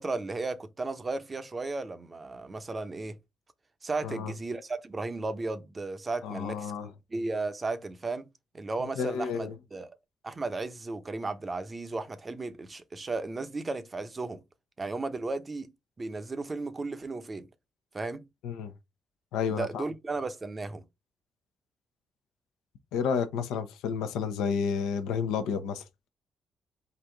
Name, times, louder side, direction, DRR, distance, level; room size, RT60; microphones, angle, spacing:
voice 1, 0.0-3.2 3.8-6.7 7.1-8.3 8.5-10.0 10.2-14.4 14.8-15.7 16.0-17.5 17.9-18.2 19.5-20.8, right 3 dB, 35° right, 0.8 m, -34 dB
voice 2, 6.2-6.9 9.0-9.5 18.4-18.7 19.3-19.8 22.9-25.8, left 6 dB, 80° left, 0.6 m, -31 dB
4.0 x 2.5 x 4.4 m
hypercardioid pair, 45°, 0 cm